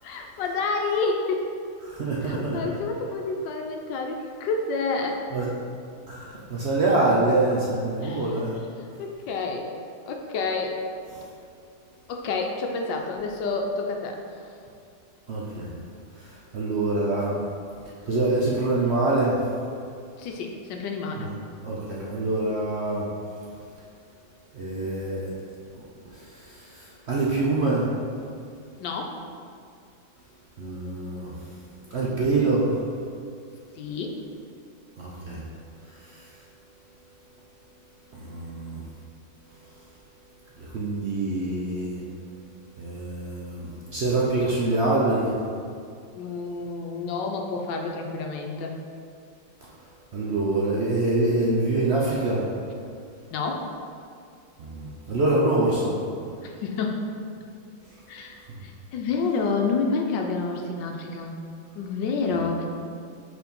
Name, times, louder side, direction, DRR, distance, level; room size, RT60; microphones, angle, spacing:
voice 1, 0.0-1.5 2.3-5.2 8.0-8.2 9.0-9.7 10.1-10.8 12.1-14.2 20.2-21.3 28.8-29.1 33.8-34.2 46.1-48.8 53.3-53.7 56.4-57.0 57.4-57.5 58.1-61.3 61.7-62.7, left 4 dB, 75° left, 2 dB, 1.3 m, -29 dB
voice 2, 1.8-2.8 5.3-5.5 6.1-8.6 11.1-11.3 15.3-15.7 16.2-17.5 18.1-19.4 21.2-21.3 21.6-23.1 24.5-25.4 25.7-25.8 26.1-27.9 30.6-31.3 31.9-32.8 35.0-35.4 35.9-36.3 38.1-38.8 40.6-42.0 42.8-45.4 50.1-52.5 54.6-56.0 58.5-58.6, right 2 dB, 70° right, -5 dB, 0.6 m, -25 dB
4.7 x 4.3 x 5.2 m, 2.4 s
omnidirectional pair, 2.1 m